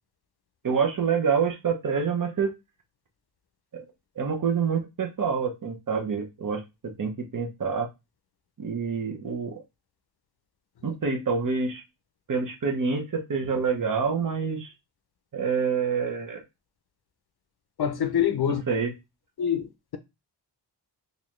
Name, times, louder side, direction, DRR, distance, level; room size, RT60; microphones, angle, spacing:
voice 1, 0.6-2.5 3.7-3.9 4.2-7.9 8.6-9.6 10.8-11.8 12.3-14.7 15.3-16.4 18.5-18.9, right 5 dB, 45° right, 0.9 m, -27 dB
voice 2, 17.8-18.6 19.4-20.0, left 9 dB, 60° left, 0.5 m, -25 dB
4.0 x 2.6 x 3.1 m
wide cardioid pair, 85°, 44 cm